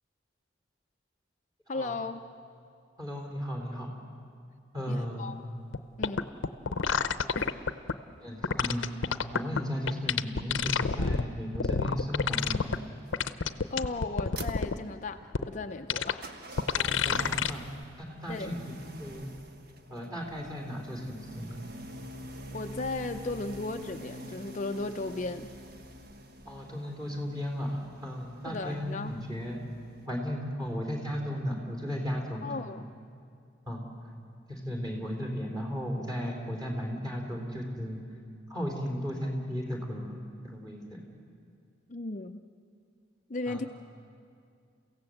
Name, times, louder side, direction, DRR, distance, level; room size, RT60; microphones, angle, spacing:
voice 1, 1.7-2.2 4.9-5.4 6.0-6.3 7.4-7.5 13.7-16.3 18.3-18.5 22.5-25.5 28.5-29.2 32.4-32.9 41.9-42.4 43.3-43.7, left 3 dB, 40° left, 6 dB, 0.5 m, -36 dB
voice 2, 3.0-3.9 4.7-5.4 8.2-12.7 16.8-17.7 18.0-19.4 19.9-21.6 26.5-29.6 30.1-32.6 33.7-33.9 34.5-38.0 38.5-41.1 43.5-43.6, equal, 20° right, 0 dB, 3.8 m, -35 dB
sound 1, 5.7-5.8 6.0-7.9 8.4-9.6 9.9-11.2 11.6-12.8 13.1-14.7 15.3-15.4 15.9-16.1 16.6-17.5 17.8-17.9, left 5 dB, 75° left, 0.7 m, -28 dB
sound 2, 12.2-30.1, right 1 dB, 50° right, 1.2 m, -46 dB
30.0 x 16.5 x 7.9 m, 2.4 s
head